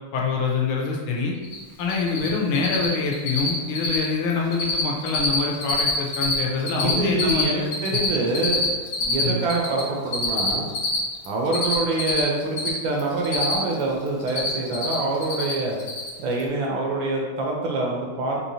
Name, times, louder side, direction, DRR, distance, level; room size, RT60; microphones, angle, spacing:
voice 1, 0.1-1.3 1.8-8.0 9.2-9.4, left 4 dB, 80° left, -1 dB, 1.4 m, -25 dB
Cricket, 1.4-1.6 1.8-2.3 2.5-2.9 3.1-3.5 3.7-4.1 4.3-4.8 5.1-6.3 6.6-9.8 10.1-12.7 13.0-13.8 14.1-14.9 15.2-15.5 15.8-16.1, left 3 dB, 60° left, 1.0 m, -25 dB
voice 2, 6.7-8.6 9.0-10.7 11.2-15.8 16.2-18.4, right 2 dB, 70° right, -1 dB, 1.3 m, -25 dB
4.7 x 2.8 x 2.7 m, 1.4 s
omnidirectional pair, 2.4 m